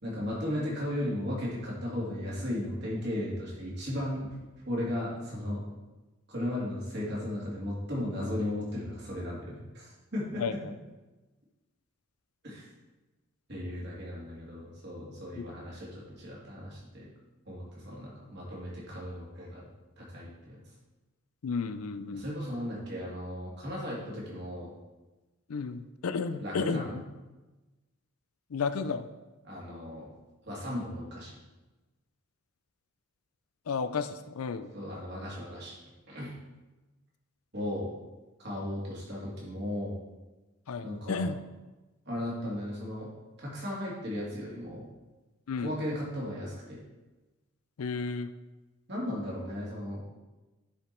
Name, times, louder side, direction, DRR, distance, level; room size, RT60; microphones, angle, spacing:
voice 1, 0.0-4.4 4.7-5.7 6.3-10.6 12.4-12.7 13.5-17.1 17.5-19.6 20.0-20.6 22.1-24.7 26.4-27.0 29.4-30.1 30.4-31.4 34.7-35.8 36.1-36.3 37.5-37.9 38.4-40.0 40.8-41.3 42.1-43.1 43.4-44.8 45.6-46.8 48.9-50.0, left 1 dB, 50° right, -5 dB, 2.8 m, -36 dB
voice 2, 10.4-10.7 15.3-15.4 21.4-22.3 25.5-27.0 28.5-29.1 33.7-34.7 40.7-41.4 45.5-45.8 47.8-48.3, left 5 dB, 90° left, 11 dB, 0.5 m, -33 dB
10.0 x 5.1 x 4.4 m, 1.1 s
head